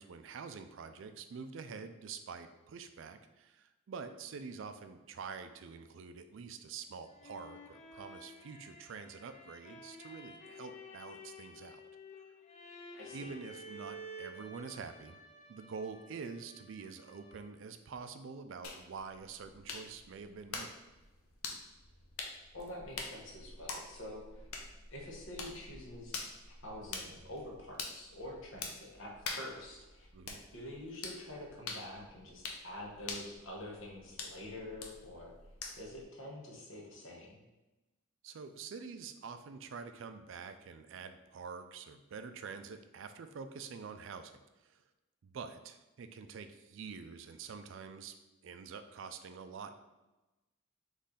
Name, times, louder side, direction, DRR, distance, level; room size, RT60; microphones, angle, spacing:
voice 1, 0.0-11.8 13.1-15.2 15.5-20.7 30.1-30.4 38.2-44.8 45.2-48.2 48.4-49.8, right 5 dB, 60° right, 9 dB, 0.4 m, -46 dB
sound 1, 6.8-17.7, equal, 30° left, 0.4 m, -52 dB
voice 2, 13.0-13.3 22.5-24.5 24.9-26.2 26.6-30.1 30.5-35.3 35.7-37.4, left 1 dB, 65° left, -1 dB, 1.0 m, -47 dB
sound 2, 18.6-36.0, left 4 dB, 90° left, 0.7 m, -46 dB
4.1 x 3.2 x 3.7 m, 1.1 s
head